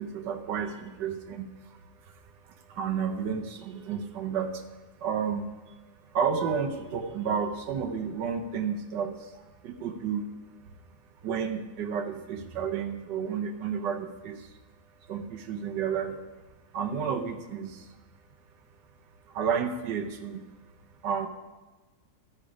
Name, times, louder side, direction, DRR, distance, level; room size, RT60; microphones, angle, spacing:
voice 1, 0.0-1.5 2.7-4.6 5.0-5.4 6.1-9.3 9.6-10.3 11.2-14.5 15.1-16.2 16.7-17.8 19.3-20.4 21.0-21.3, right 7 dB, 85° right, 6 dB, 1.5 m, -31 dB
13.0 x 8.7 x 5.0 m, 1.2 s
omnidirectional pair, 1.8 m